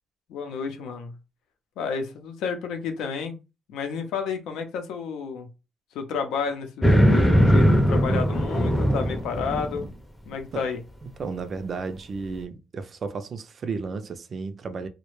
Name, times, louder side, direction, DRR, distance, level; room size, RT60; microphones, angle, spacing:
voice 1, 0.3-1.1 1.8-3.4 3.7-5.5 5.9-9.9 10.3-10.8, left 5 dB, 85° left, 0.6 m, -31 dB
sound 1, 6.8-9.9, equal, 10° left, 0.5 m, -19 dB
voice 2, 11.0-14.9, right 4 dB, 50° right, 0.4 m, -33 dB
2.1 x 2.0 x 3.0 m
cardioid pair, 90°, 0 cm